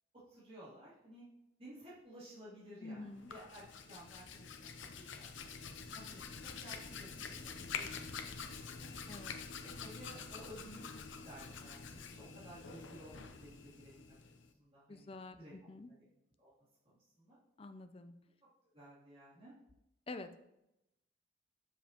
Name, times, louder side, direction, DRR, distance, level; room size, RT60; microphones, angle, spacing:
voice 1, 0.1-1.3 1.6-5.5 5.9-8.9 9.6-11.0 11.2-15.5 15.9-16.0 16.4-16.5 16.8-17.4 18.7-19.5, right 1 dB, 30° right, -10 dB, 2.8 m, -55 dB
voice 2, 2.8-3.3 9.1-9.3 14.9-15.9 17.6-18.1 20.1-20.4, left 2 dB, 30° left, 9 dB, 0.4 m, -48 dB
Hands, 3.1-14.5, left 5 dB, 70° left, 0.7 m, -47 dB
7.4 x 7.1 x 2.9 m, 0.88 s
head